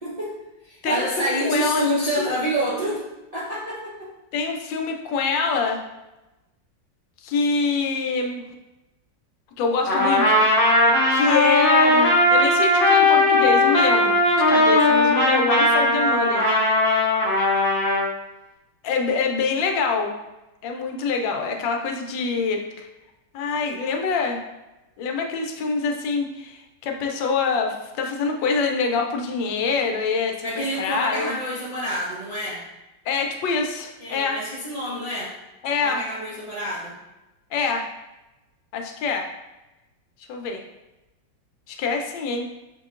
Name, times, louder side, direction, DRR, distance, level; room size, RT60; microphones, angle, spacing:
voice 1, 0.0-0.4 0.6-3.0 3.3-4.1 30.4-32.6 34.0-35.3 35.8-36.9, equal, 45° right, -8 dB, 0.4 m, -27 dB
voice 2, 0.8-1.9 4.3-5.8 7.2-8.4 9.6-10.4 11.1-14.2 14.5-16.5 18.8-20.1 20.6-22.9 23.3-24.4 25.0-30.5 30.7-31.3 33.1-34.4 35.6-36.0 37.5-37.9 38.7-39.3 40.3-40.6 41.7-42.5, left 4 dB, 80° left, 3 dB, 1.3 m, -25 dB
Trumpet, 9.9-18.1, left 1 dB, 65° left, 0.5 m, -18 dB
6.3 x 2.8 x 2.4 m, 1.0 s
omnidirectional pair, 2.0 m